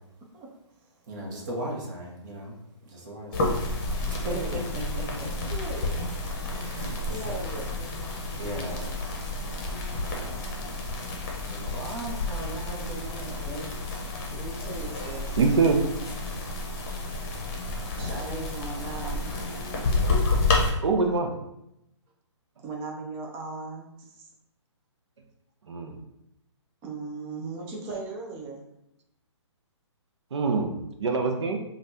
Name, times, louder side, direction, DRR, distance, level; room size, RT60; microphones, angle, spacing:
voice 1, 1.1-2.6 2.8-3.7 4.0-4.6 4.9-5.3 6.4-7.5 8.4-8.9 10.0-10.5 11.5-13.7 17.6-18.4, right 1 dB, 40° right, -2 dB, 1.2 m, -38 dB
sound 1, 3.3-20.7, left 2 dB, 30° left, 0.8 m, -30 dB
voice 2, 4.2-4.6 5.5-6.2 7.1-7.9 14.3-15.4 18.0-19.2 22.6-24.3 26.8-28.6, right 3 dB, 15° right, -1 dB, 0.5 m, -37 dB
voice 3, 15.4-15.9 20.8-21.4 25.7-26.0 30.3-31.6, right 4 dB, 70° right, 4 dB, 0.7 m, -24 dB
5.1 x 2.4 x 2.7 m, 0.82 s
hypercardioid pair, 155°, 15 cm